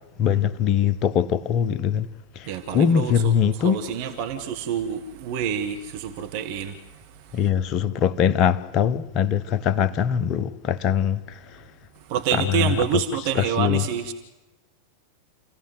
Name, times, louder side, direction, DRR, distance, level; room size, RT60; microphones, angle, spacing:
voice 1, 0.2-2.1 2.3-3.8 7.3-11.6 12.3-13.0 13.3-13.9, left 8 dB, 35° left, 1.0 m, -22 dB
voice 2, 2.5-3.3 3.6-6.8 7.2-7.4 12.1-14.1, right 8 dB, 45° right, 1.7 m, -27 dB
27.5 x 16.0 x 8.1 m
figure-of-eight pair, 90°, 0 cm